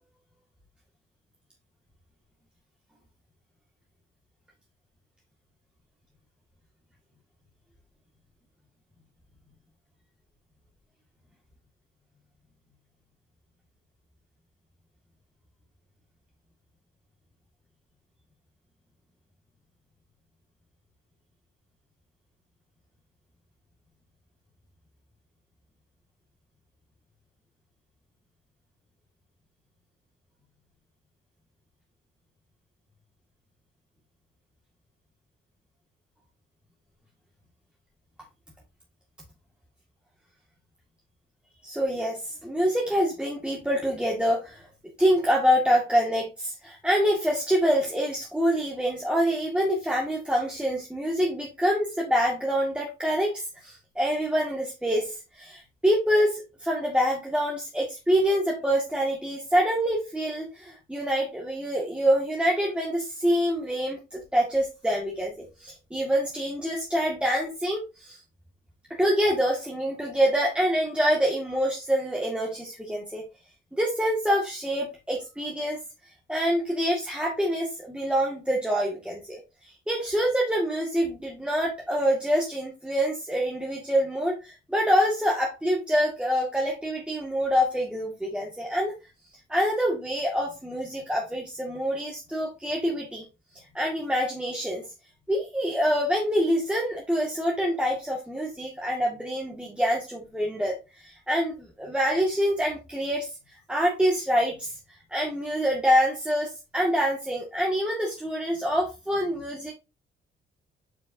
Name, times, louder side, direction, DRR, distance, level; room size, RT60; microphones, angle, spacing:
voice 1, 41.6-44.7 45.0-65.3 65.6-68.2 69.0-73.2 73.7-75.8 76.3-79.4 79.9-88.9 89.5-93.2 93.7-94.8 95.3-103.3 103.7-104.7 105.1-109.7, equal, 5° right, -3 dB, 1.9 m, -26 dB
7.5 x 6.0 x 2.7 m, 0.27 s
cardioid pair, 90°, 20 cm